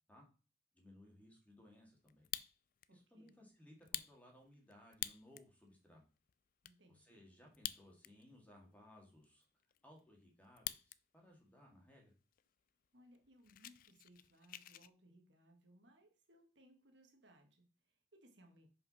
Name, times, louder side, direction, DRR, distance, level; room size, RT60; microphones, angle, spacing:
voice 1, 0.7-2.3 2.9-6.0 6.9-9.4 9.8-12.1, left 1 dB, 10° left, 0 dB, 2.3 m, -62 dB
Fire, 2.1-2.9 3.3-3.4 3.8-5.5 6.0-6.1 6.3-6.7 7.5-8.3 8.6-8.7 9.2-11.0 11.3-11.7 12.3-12.4 12.7-12.9 13.1-14.9, left 13 dB, 50° left, 0.3 m, -47 dB
voice 2, 2.9-3.4 6.6-7.2 12.9-18.7, equal, 75° right, 4 dB, 1.6 m, -66 dB
5.7 x 5.3 x 5.7 m, 0.35 s
head